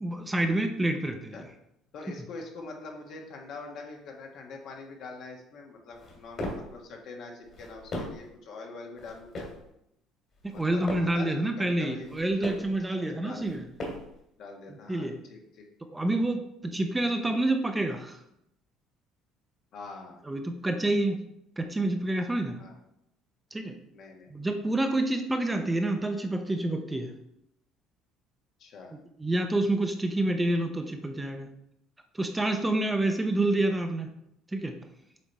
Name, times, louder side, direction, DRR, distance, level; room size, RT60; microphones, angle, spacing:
voice 1, 0.0-1.5 10.4-13.6 14.9-15.2 15.9-18.2 20.2-21.2 21.6-22.6 23.5-23.7 24.3-27.1 28.9-31.5 32.1-34.1 34.5-34.7, right 1 dB, 15° right, 5 dB, 0.6 m, -28 dB
voice 2, 1.9-9.5 10.5-12.1 13.0-13.5 14.4-15.7 19.7-20.2 22.6-22.8 23.9-24.3 28.6-29.0, left 3 dB, 60° left, 1 dB, 1.3 m, -44 dB
sound 1, 5.9-6.7 7.4-8.3 9.0-9.6 10.3-11.2 11.9-12.7 13.4-14.2, left 1 dB, 45° left, 2.2 m, -38 dB
7.3 x 3.3 x 4.1 m, 0.79 s
cardioid pair, 100°, 0 cm